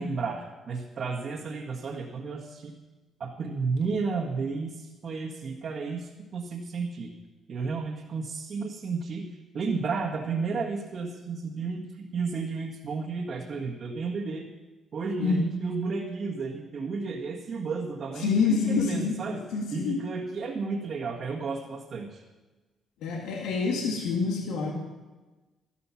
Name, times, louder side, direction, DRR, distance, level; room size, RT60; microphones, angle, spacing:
voice 1, 0.0-2.8 3.2-7.1 7.5-9.3 9.5-14.5 14.9-19.4 19.7-22.2, right 4 dB, 55° right, -3 dB, 1.7 m, -32 dB
voice 2, 18.2-19.2 19.5-20.0 23.0-24.7, left 5 dB, 90° left, 1 dB, 1.9 m, -26 dB
13.0 x 12.5 x 5.9 m, 1.2 s
cardioid pair, 90°, 0 cm